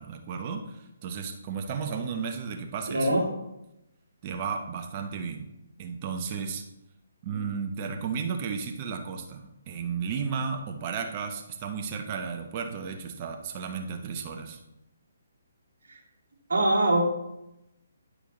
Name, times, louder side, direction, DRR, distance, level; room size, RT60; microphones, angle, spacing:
voice 1, 0.0-3.2 4.2-5.5 5.8-6.6 7.2-14.6, right 6 dB, 30° right, 4 dB, 0.9 m, -34 dB
voice 2, 2.9-3.2 16.5-17.1, right 1 dB, 60° right, -3 dB, 2.4 m, -22 dB
10.5 x 5.0 x 3.9 m, 0.88 s
figure-of-eight pair, 135°, 0 cm